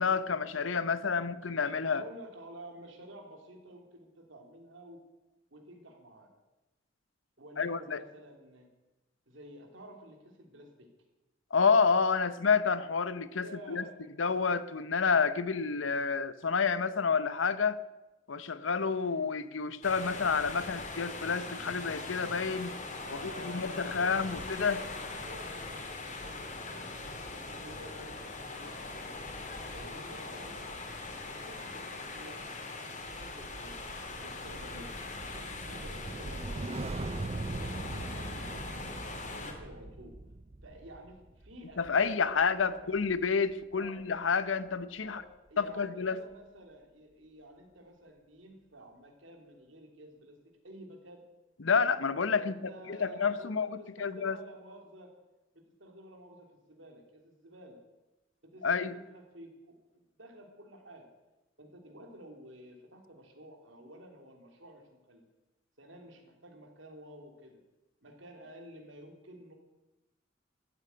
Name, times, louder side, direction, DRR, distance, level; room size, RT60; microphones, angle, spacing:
voice 1, 0.0-2.0 7.6-8.0 11.5-13.8 14.2-17.8 18.3-22.7 23.1-24.8 41.8-45.2 45.6-46.2 51.6-52.5 52.9-54.4 58.6-58.9, left 5 dB, 80° left, 0.8 m, -29 dB
voice 2, 1.9-5.0 5.5-6.3 7.4-8.7 9.3-10.9 13.3-13.9 23.0-25.9 26.2-29.3 29.7-30.9 31.3-33.8 34.2-35.0 35.3-36.7 37.1-38.8 39.1-40.2 40.6-43.0 43.7-44.0 45.0-51.2 52.3-55.1 55.5-57.8 58.4-61.1 61.6-65.2 65.8-67.6 68.0-69.5, right 1 dB, 70° right, 3.1 m, -51 dB
sound 1, 19.8-39.5, left 3 dB, 40° left, 2.5 m, -41 dB
sound 2, 33.1-43.5 43.8-44.2, right 2 dB, 30° right, 0.6 m, -41 dB
14.5 x 8.7 x 9.5 m
head